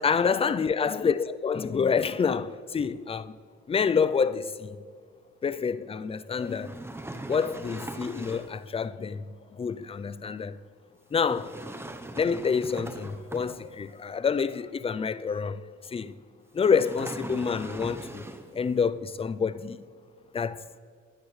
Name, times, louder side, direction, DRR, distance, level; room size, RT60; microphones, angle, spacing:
voice 1, 0.0-3.3 3.7-4.8 5.4-6.7 7.3-9.2 9.5-10.6 11.1-11.5 12.2-16.2 16.5-18.2 18.5-19.8 20.3-20.6, left 6 dB, 20° left, 0.4 m, -27 dB
sound 1, 6.4-8.6 11.2-13.9 16.6-18.6, right 1 dB, 10° right, 0.8 m, -40 dB
20.0 x 9.8 x 3.2 m
cardioid pair, 90°, 30 cm